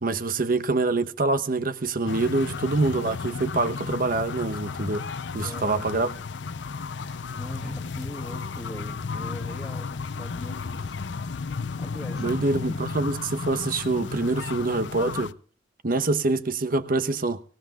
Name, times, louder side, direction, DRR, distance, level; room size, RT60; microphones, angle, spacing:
voice 1, 0.0-5.1 5.3-6.1 12.2-15.3 15.8-17.4, right 3 dB, 50° right, 1.0 m, -25 dB
sound 1, 2.1-15.3, left 4 dB, 85° left, 0.6 m, -33 dB
voice 2, 5.4-6.2 6.9-11.0 11.4-12.4, equal, ahead, 2.3 m, -42 dB
24.0 x 17.5 x 2.4 m
head